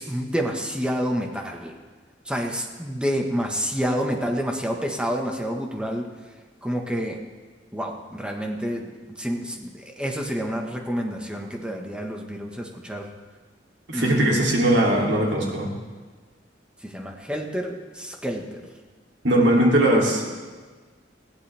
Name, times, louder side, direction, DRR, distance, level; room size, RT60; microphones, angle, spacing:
voice 1, 0.0-1.8 2.3-6.1 6.6-7.2 7.7-13.1 13.9-14.5 16.8-18.6, equal, 5° right, 1 dB, 1.5 m, -28 dB
voice 2, 13.9-15.7 19.2-20.3, right 1 dB, 75° right, -2 dB, 3.2 m, -20 dB
20.0 x 15.5 x 3.6 m, 1.4 s
head